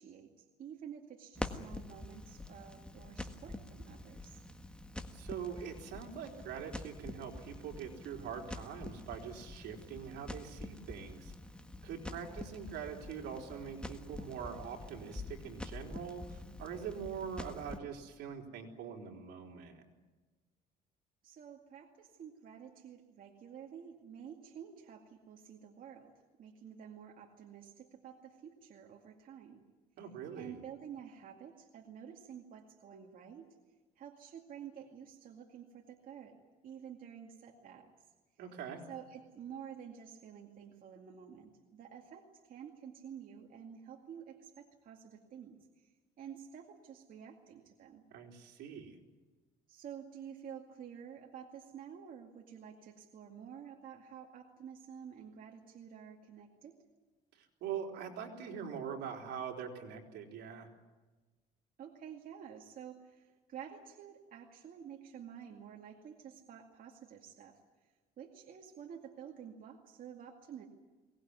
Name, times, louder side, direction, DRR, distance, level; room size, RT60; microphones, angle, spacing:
voice 1, 0.0-4.4 12.1-12.5 21.2-26.1 26.4-29.6 30.3-33.6 34.0-36.4 36.6-38.0 38.9-48.0 49.7-56.8 61.8-70.7, right 8 dB, 55° right, 1 dB, 2.3 m, -50 dB
Crackle, 1.3-17.8, left 1 dB, 5° left, 1.5 m, -46 dB
voice 2, 5.1-11.3 11.8-19.8 30.0-30.6 38.4-38.8 48.1-49.0 57.3-60.7, right 7 dB, 80° right, 1 dB, 3.9 m, -43 dB
23.0 x 19.0 x 9.6 m, 1.3 s
cardioid pair, 110°, 17 cm